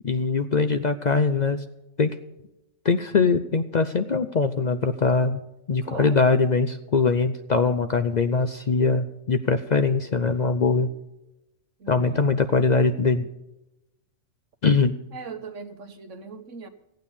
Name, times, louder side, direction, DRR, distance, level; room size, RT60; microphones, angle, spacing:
voice 1, 0.0-1.6 2.0-2.2 2.8-5.4 5.7-10.9 11.9-13.3 14.6-14.9, left 4 dB, 50° left, 9 dB, 0.6 m, -22 dB
voice 2, 5.8-6.3 11.8-12.3 15.1-16.7, right 5 dB, 75° right, 8 dB, 1.5 m, -39 dB
15.0 x 9.2 x 7.1 m, 0.91 s
omnidirectional pair, 1.3 m